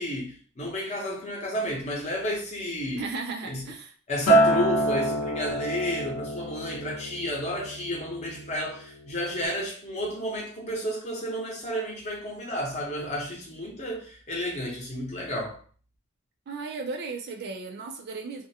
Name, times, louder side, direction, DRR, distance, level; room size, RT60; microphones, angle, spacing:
voice 1, 0.0-3.0 3.5-3.6 4.1-15.6, equal, 30° left, 0.7 m, -32 dB
voice 2, 3.0-3.9 16.5-18.5, right 4 dB, 45° right, 0.3 m, -35 dB
Acoustic guitar, 4.3-8.7 9.1-9.5, right 1 dB, 80° left, 0.7 m, -26 dB
2.4 x 2.1 x 2.7 m
head